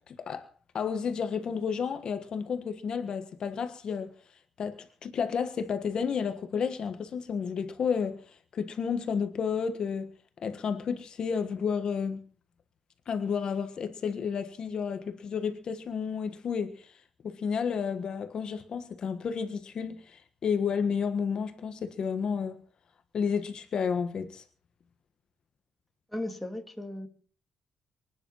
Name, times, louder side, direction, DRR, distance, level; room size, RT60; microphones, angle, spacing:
voice 1, 0.1-0.5 0.7-4.1 4.6-10.1 10.4-12.2 13.1-16.9 17.2-22.6 23.1-24.4, left 6 dB, 40° left, 1.5 m, -31 dB
voice 2, 26.1-27.1, left 1 dB, 5° left, 2.1 m, -36 dB
25.0 x 10.0 x 5.6 m
cardioid pair, 175°, 2 cm